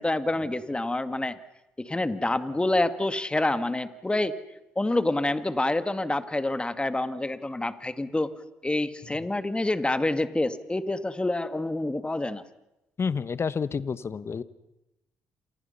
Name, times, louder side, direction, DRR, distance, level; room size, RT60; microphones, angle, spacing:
voice 1, 0.0-1.4 1.8-4.4 4.8-8.3 8.6-12.4, left 2 dB, 15° left, 11 dB, 2.1 m, -27 dB
voice 2, 13.0-14.4, left 5 dB, 40° left, 16 dB, 1.4 m, -29 dB
29.5 x 27.5 x 5.7 m, 0.92 s
hypercardioid pair, 50°, 6 cm